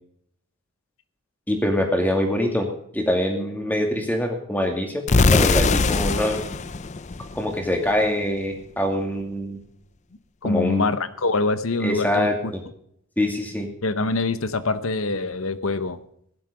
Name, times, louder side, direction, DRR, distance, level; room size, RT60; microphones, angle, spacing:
voice 1, 1.5-2.7 2.9-5.0 5.3-6.4 7.3-9.6 10.4-10.9 11.8-12.3 13.2-13.7, left 1 dB, 10° left, 3 dB, 2.4 m, -24 dB
sound 1, 5.1-7.9, left 3 dB, 30° left, 0.5 m, -21 dB
voice 2, 10.4-12.3 13.8-16.0, left 3 dB, 70° left, 13 dB, 1.0 m, -24 dB
15.5 x 11.5 x 5.1 m, 0.69 s
head